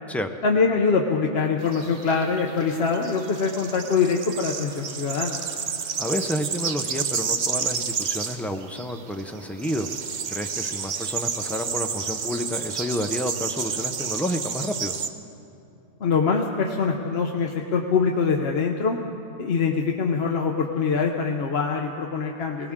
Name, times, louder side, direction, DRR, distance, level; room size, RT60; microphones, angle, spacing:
voice 1, 0.4-5.4 16.0-19.0 19.4-22.7, left 5 dB, 60° left, 2 dB, 1.0 m, -24 dB
sound 1, 1.6-15.1, right 6 dB, 45° right, 0.7 m, -31 dB
voice 2, 6.0-9.9 10.3-15.0, equal, ahead, 5 dB, 0.4 m, -30 dB
21.0 x 18.0 x 3.7 m, 2.6 s
omnidirectional pair, 1.2 m